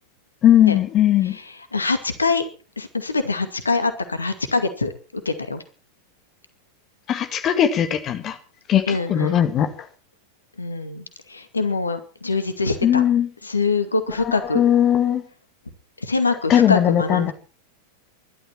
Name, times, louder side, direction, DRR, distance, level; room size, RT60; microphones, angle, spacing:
voice 1, 0.4-1.4 7.1-8.4 8.7-9.7 12.8-13.3 14.2-15.2 16.5-17.3, left 10 dB, 30° left, 2.0 m, -18 dB
voice 2, 1.2-2.4 2.8-5.6 8.9-9.4 10.6-13.0 13.4-14.6 16.0-17.3, left 3 dB, 80° left, 2.2 m, -24 dB
23.5 x 12.5 x 4.5 m
figure-of-eight pair, 90°, 0 cm